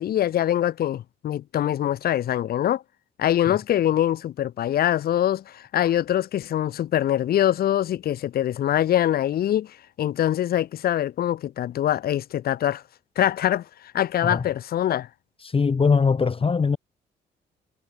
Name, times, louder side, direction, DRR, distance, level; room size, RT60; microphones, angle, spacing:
voice 1, 0.0-2.8 3.2-9.7 10.0-12.8 13.2-13.6 13.9-15.1, left 11 dB, 50° left, 0.4 m, -23 dB
voice 2, 15.4-16.8, left 5 dB, 30° left, 0.8 m, -21 dB
cardioid pair, 90°, 20 cm